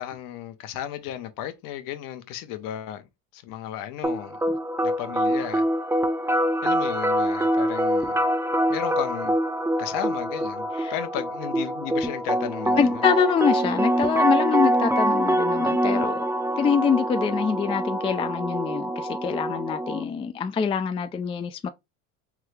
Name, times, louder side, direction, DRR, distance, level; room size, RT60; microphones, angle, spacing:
voice 1, 0.0-3.0 3.3-4.4 4.8-5.6 6.6-8.2 8.7-9.4 9.8-13.0, left 11 dB, 60° left, 1.0 m, -34 dB
sound 1, 4.0-20.0, right 1 dB, 5° right, 0.7 m, -25 dB
voice 2, 12.8-16.2 16.6-21.7, left 7 dB, 15° left, 0.3 m, -25 dB
3.6 x 3.3 x 3.2 m
supercardioid pair, 105°, 36 cm